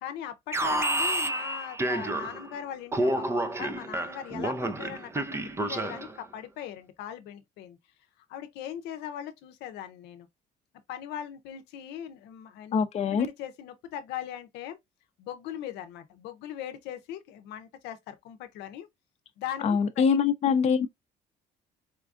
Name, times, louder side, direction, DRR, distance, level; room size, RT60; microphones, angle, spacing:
voice 1, 0.0-7.8 8.3-10.3 10.9-12.8 13.1-14.8 15.2-18.9 19.4-20.0, left 10 dB, 85° left, 0.6 m, -39 dB
Alarm, 0.5-2.5 2.9-6.2, right 1 dB, 15° right, 0.5 m, -29 dB
voice 2, 12.7-13.3 19.6-20.9, left 6 dB, 40° left, 0.6 m, -24 dB
4.3 x 2.3 x 2.4 m
cardioid pair, 110°, 17 cm